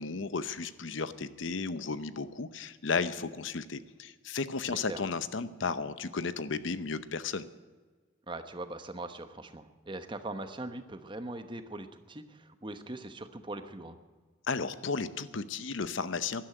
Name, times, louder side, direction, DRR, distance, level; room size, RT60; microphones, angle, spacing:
voice 1, 0.0-7.5 14.5-16.4, left 4 dB, 70° left, 13 dB, 0.8 m, -34 dB
voice 2, 4.6-5.0 8.3-14.0, right 2 dB, 25° right, 9 dB, 0.9 m, -41 dB
12.5 x 11.5 x 9.0 m, 1.5 s
head